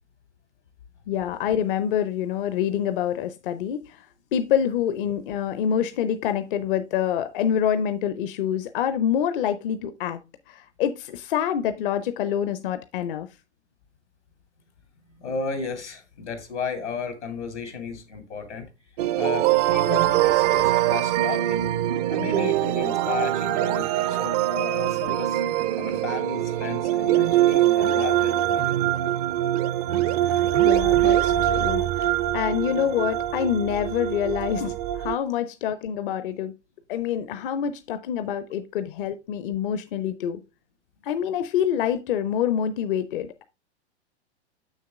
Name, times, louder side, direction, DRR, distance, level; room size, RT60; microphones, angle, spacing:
voice 1, 1.1-4.1 4.3-10.2 10.5-13.3 30.2-36.5 36.9-40.4 41.0-43.4, left 9 dB, 50° left, 0.7 m, -26 dB
voice 2, 15.2-18.7 19.1-21.7 22.1-25.4 25.8-28.9, left 4 dB, 85° left, 2.6 m, -33 dB
sound 1, 19.0-35.2, right 13 dB, 35° right, 0.4 m, -23 dB
6.9 x 6.5 x 3.5 m
hypercardioid pair, 110°, 34 cm